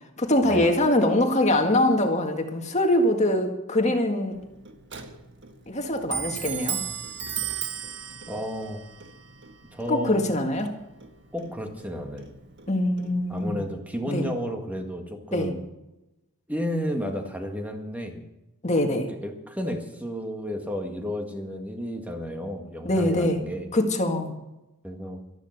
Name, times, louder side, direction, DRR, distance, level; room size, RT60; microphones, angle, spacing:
voice 1, 0.2-4.4 5.7-6.8 9.9-10.7 12.7-13.6 14.1-14.3 15.3-15.5 18.6-19.1 22.9-23.4 23.7-24.3, left 1 dB, 30° left, 4 dB, 1.9 m, -23 dB
Clock, 4.3-13.6, right 8 dB, 55° right, 1.5 m, -37 dB
voice 2, 8.3-8.8 9.7-10.2 11.3-12.3 13.3-15.6 16.5-18.2 19.1-23.7 24.8-25.2, equal, 5° right, 3 dB, 1.8 m, -32 dB
13.0 x 12.0 x 6.6 m, 0.94 s
head